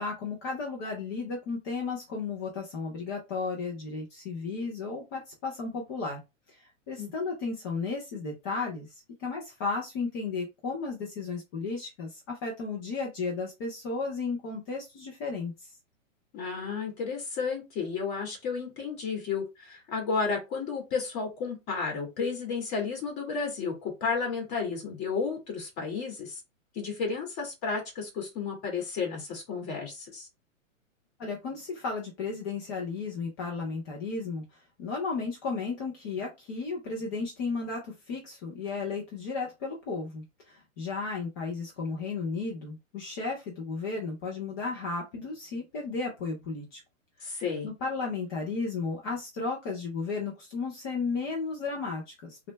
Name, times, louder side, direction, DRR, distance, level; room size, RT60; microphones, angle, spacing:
voice 1, 0.0-6.2 6.5-6.6 6.9-15.7 31.2-34.4 34.8-46.8 47.2-52.5, left 4 dB, 15° left, 0.3 m, -34 dB
voice 2, 16.3-26.4 26.8-30.3 47.2-47.7, left 5 dB, 35° left, 1.9 m, -32 dB
3.7 x 2.2 x 3.1 m
hypercardioid pair, 130°, 40 cm